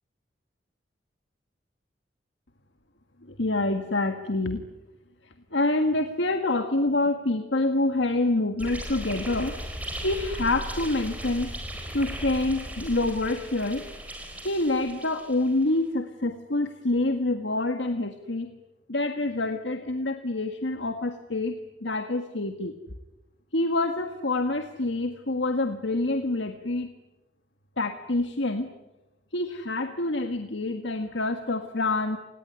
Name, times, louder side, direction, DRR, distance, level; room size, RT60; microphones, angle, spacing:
voice 1, 3.2-4.6 5.5-9.6 10.0-11.5 11.9-13.9 14.4-18.5 18.9-21.5 21.8-22.7 23.5-26.9 27.8-28.7 29.3-32.2, left 2 dB, 80° left, 7 dB, 1.7 m, -27 dB
sound 1, 8.6-15.6, equal, 10° right, 4.2 m, -37 dB
29.0 x 19.0 x 9.8 m, 1.0 s
head